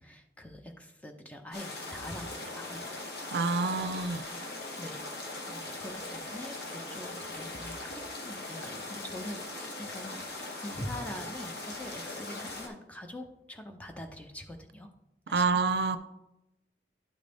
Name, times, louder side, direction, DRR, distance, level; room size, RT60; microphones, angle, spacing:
voice 1, 0.0-3.0 4.8-5.0 5.5-9.4 9.8-14.9 15.3-15.6, left 1 dB, 10° left, 4 dB, 0.5 m, -44 dB
sound 1, 1.5-12.7, left 2 dB, 65° left, 1.3 m, -40 dB
voice 2, 3.3-4.3 15.3-16.0, right 4 dB, 75° right, 11 dB, 0.5 m, -27 dB
11.0 x 3.9 x 3.4 m, 0.89 s
head